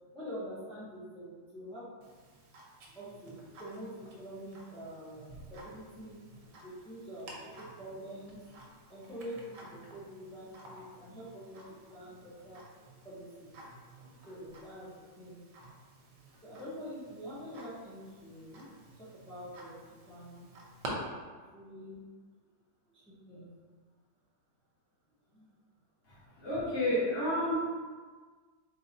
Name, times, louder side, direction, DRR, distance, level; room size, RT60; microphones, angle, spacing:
voice 1, 0.1-1.9 2.9-6.2 6.6-8.4 8.9-11.6 11.9-12.6 13.0-13.6 14.3-14.9 15.2-15.4 16.4-18.6 19.0-19.8 20.1-20.5 21.5-22.0 22.9-23.5 25.3-25.4, equal, 5° left, -12 dB, 0.6 m, -45 dB
Tick-tock, 2.0-20.9, right 2 dB, 80° right, 1.4 m, -52 dB
voice 2, 26.4-27.5, left 1 dB, 65° left, -8 dB, 1.9 m, -30 dB
3.9 x 3.9 x 2.7 m, 1.5 s
omnidirectional pair, 1.9 m